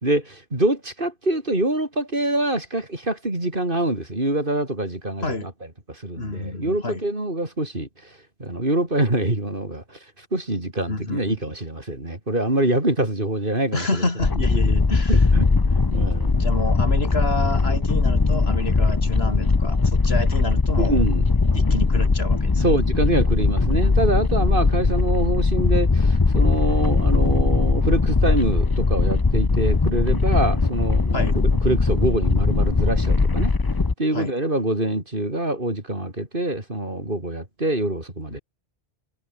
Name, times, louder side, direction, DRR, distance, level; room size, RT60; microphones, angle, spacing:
voice 1, 0.0-5.5 5.9-7.9 8.4-10.0 10.3-13.9 15.1-15.5 15.9-16.4 20.8-21.2 21.7-21.8 22.6-33.5 34.0-38.4, right 1 dB, 55° right, 5.3 m, -25 dB
voice 2, 6.2-7.0 10.9-11.4 13.7-15.2 15.9-16.1 16.3-21.0 21.5-22.8 31.1-31.4 34.1-34.3 38.3-38.4, left 2 dB, 70° left, 3.8 m, -29 dB
sound 1, 14.2-33.9, left 3 dB, 25° left, 0.7 m, -20 dB
omnidirectional pair, 1.1 m